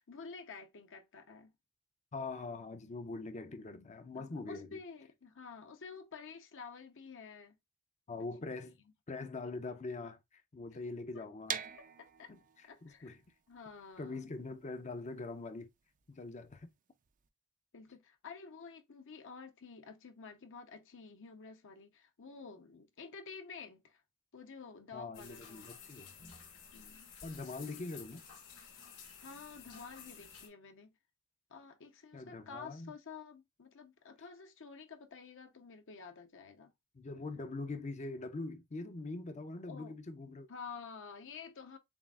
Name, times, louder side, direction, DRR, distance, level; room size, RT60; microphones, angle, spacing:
voice 1, 0.0-1.5 4.1-7.5 11.1-11.2 12.0-12.3 12.7-13.2 13.5-14.3 17.7-24.0 24.3-25.7 26.7-27.1 29.2-30.9 31.5-36.7 39.7-40.0 40.5-41.8, left 5 dB, 60° left, 0.8 m, -50 dB
voice 2, 2.1-4.8 8.1-8.8 9.1-11.6 12.3-12.4 12.8-13.2 14.0-15.7 16.1-16.7 24.9-26.1 27.2-28.2 32.1-32.9 36.9-40.5, left 3 dB, 30° left, 0.5 m, -43 dB
sound 1, 11.5-17.3, right 8 dB, 35° right, 0.4 m, -45 dB
sound 2, 25.1-30.5, left 6 dB, 80° left, 2.8 m, -53 dB
7.0 x 2.5 x 2.3 m
head